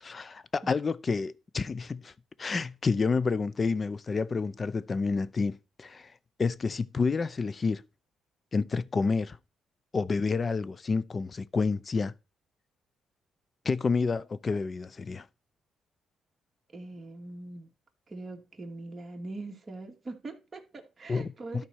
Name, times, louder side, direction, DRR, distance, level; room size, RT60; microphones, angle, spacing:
voice 1, 0.0-2.1 2.4-6.1 6.4-7.8 8.5-9.4 9.9-12.1 13.6-15.2 21.1-21.3 21.5-21.6, left 4 dB, 35° left, 0.7 m, -29 dB
voice 2, 16.7-17.7 18.1-21.7, right 2 dB, 30° right, 2.6 m, -42 dB
13.0 x 4.3 x 6.4 m
cardioid pair, 90°, 0 cm